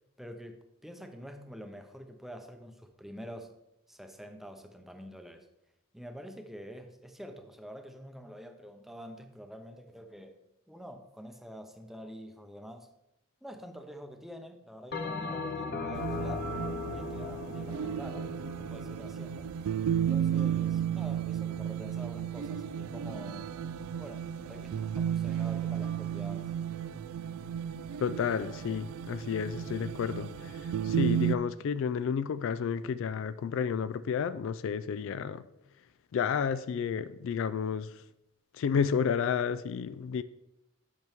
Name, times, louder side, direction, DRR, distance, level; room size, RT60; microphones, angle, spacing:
voice 1, 0.2-3.5 3.9-5.5 5.9-10.4 10.7-12.9 13.4-16.5 16.9-19.5 20.0-23.5 24.0-26.5, equal, ahead, 5 dB, 0.7 m, -47 dB
Bell, 14.9-19.5, left 4 dB, 50° left, 0.7 m, -38 dB
sound 1, 15.9-31.3, right 9 dB, 85° right, 0.3 m, -33 dB
voice 2, 28.0-35.4 36.1-37.9 38.5-40.2, left 7 dB, 65° left, 14 dB, 0.3 m, -31 dB
8.1 x 6.0 x 3.5 m, 0.87 s
head